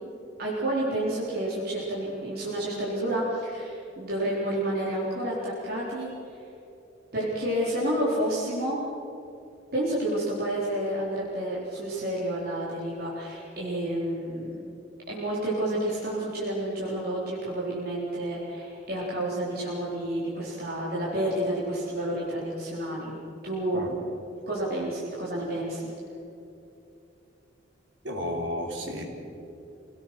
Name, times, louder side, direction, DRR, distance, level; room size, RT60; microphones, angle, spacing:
voice 1, 0.4-6.4 7.1-8.8 9.7-14.5 15.1-23.2 23.4-24.0 24.5-25.9, right 1 dB, 55° right, -7 dB, 4.3 m, -30 dB
voice 2, 28.0-29.0, equal, 75° right, 0 dB, 4.0 m, -32 dB
27.0 x 18.0 x 6.3 m, 2.8 s
head